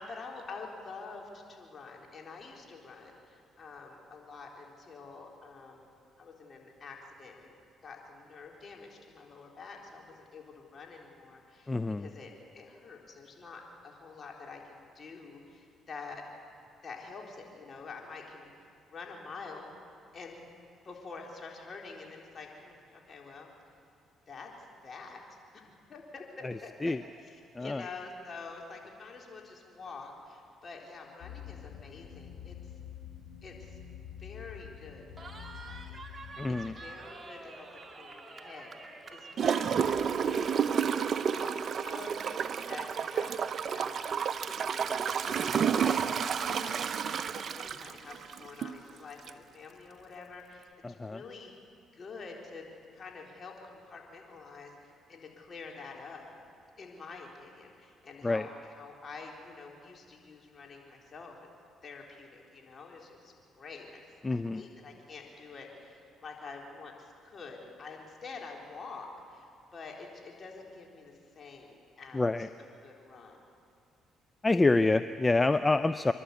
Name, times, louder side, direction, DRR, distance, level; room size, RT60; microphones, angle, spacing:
voice 1, 0.0-5.9 6.2-7.5 7.8-16.2 16.8-18.5 18.9-19.7 20.1-20.4 20.8-23.5 24.3-24.5 24.8-25.2 25.5-32.6 33.4-33.8 34.2-51.5 51.9-52.7 52.9-56.3 56.8-61.5 61.8-64.0 64.3-72.5 72.8-73.4, left 4 dB, 45° left, 0 dB, 4.0 m, -47 dB
voice 2, 11.7-12.1 26.4-26.5 26.8-27.0 27.6-27.8 36.4-36.7 50.8-51.2 58.2-58.5 64.2-64.6 72.1-72.5 74.4-76.1, left 2 dB, 25° left, 11 dB, 0.5 m, -27 dB
sound 1, 31.2-36.7, left 9 dB, 75° left, 3.8 m, -47 dB
Cheering, 35.2-40.7, right 3 dB, 30° right, 2.1 m, -48 dB
Gurgling / Toilet flush, 39.4-48.8 49.3-49.4, right 7 dB, 55° right, 0.7 m, -30 dB
27.0 x 11.5 x 8.4 m, 2.4 s
supercardioid pair, 60°, 0 cm